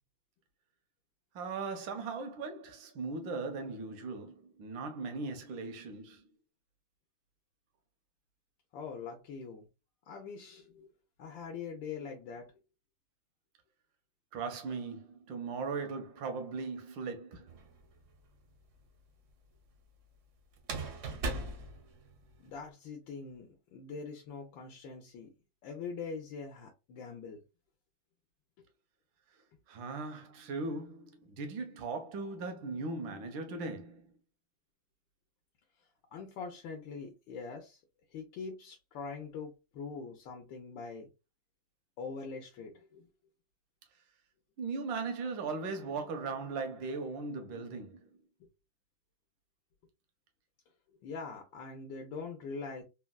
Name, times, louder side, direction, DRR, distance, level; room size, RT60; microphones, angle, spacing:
voice 1, 1.3-6.3 14.3-17.5 29.7-34.1 44.6-48.0, right 4 dB, 80° right, 1.5 m, -38 dB
voice 2, 8.7-9.7 10.1-10.9 11.2-12.5 22.4-25.3 25.6-27.4 36.1-37.8 38.1-41.1 42.0-43.1 48.4-48.5 51.0-52.8, left 5 dB, 80° left, 1.4 m, -43 dB
sound 1, 17.5-18.1 20.6-22.6, right 2 dB, 60° right, 0.8 m, -39 dB
4.0 x 2.2 x 2.2 m
omnidirectional pair, 2.1 m